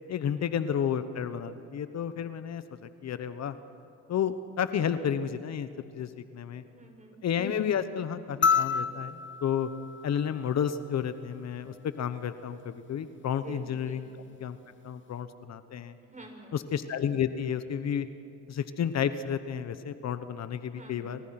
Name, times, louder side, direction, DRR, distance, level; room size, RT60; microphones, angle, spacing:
voice 1, 0.1-3.5 4.1-5.7 5.9-6.6 7.2-9.7 10.0-14.1 14.4-14.6 14.8-15.9 16.5-18.1 18.5-21.2, left 8 dB, 60° left, 12 dB, 1.2 m, -31 dB
voice 2, 6.7-7.2 13.4-14.1 16.0-16.5 20.7-21.1, right 2 dB, 25° right, 3 dB, 6.0 m, -47 dB
sound 1, 8.4-11.0 12.6-12.7, left 6 dB, 40° left, 1.1 m, -29 dB
29.5 x 25.0 x 6.0 m, 2.8 s
cardioid pair, 90°, 30 cm